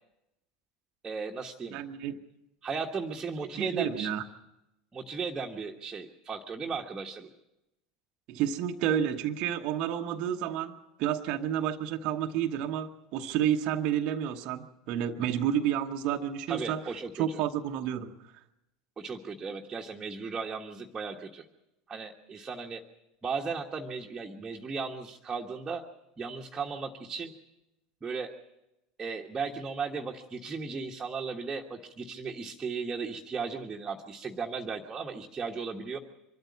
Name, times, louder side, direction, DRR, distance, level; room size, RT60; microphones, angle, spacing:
voice 1, 1.0-1.8 2.6-4.1 4.9-7.3 16.5-17.4 19.0-21.4 21.9-22.8 23.2-25.8 26.2-27.3 28.0-28.3 29.0-36.0, right 5 dB, 20° right, 0 dB, 1.4 m, -36 dB
voice 2, 1.7-2.2 3.4-4.2 8.3-16.8 17.1-18.3, right 10 dB, 45° right, 4 dB, 1.0 m, -30 dB
24.5 x 13.0 x 8.4 m, 0.91 s
figure-of-eight pair, 75°, 2 cm